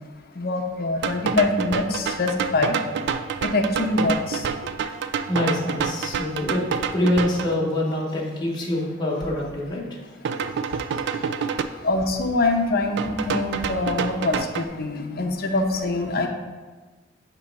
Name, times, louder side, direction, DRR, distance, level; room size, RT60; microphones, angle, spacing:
voice 1, 0.4-2.7 3.4-4.4 11.8-16.3, left 2 dB, 55° left, 4 dB, 0.6 m, -24 dB
sound 1, 1.0-7.5 10.2-11.6 13.0-14.7, right 6 dB, 60° right, 0.3 m, -28 dB
voice 2, 5.3-10.0 10.9-11.2, left 1 dB, 25° left, -4 dB, 1.0 m, -25 dB
6.6 x 3.0 x 5.2 m, 1.3 s
head